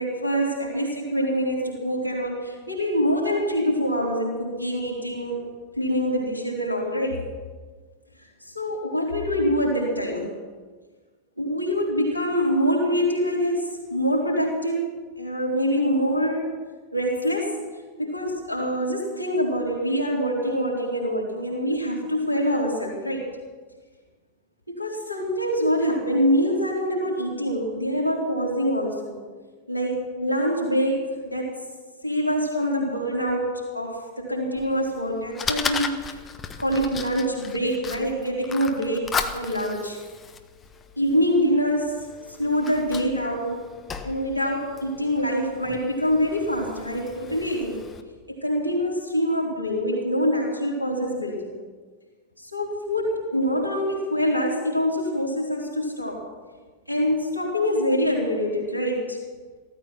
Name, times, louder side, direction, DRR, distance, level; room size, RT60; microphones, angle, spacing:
voice 1, 0.0-5.4 5.8-7.3 8.4-10.3 11.4-16.5 16.9-17.6 18.0-23.3 24.7-29.2 29.7-31.5 32.0-36.2 36.6-39.1 39.3-40.0 41.0-43.6 44.0-47.8 48.3-51.5 52.4-56.2 56.9-59.2, equal, 90° left, -3 dB, 4.0 m, -25 dB
Fire, 34.6-48.0, left 6 dB, 20° left, 1.2 m, -36 dB
16.0 x 13.5 x 6.0 m, 1.4 s
figure-of-eight pair, 90°, 0 cm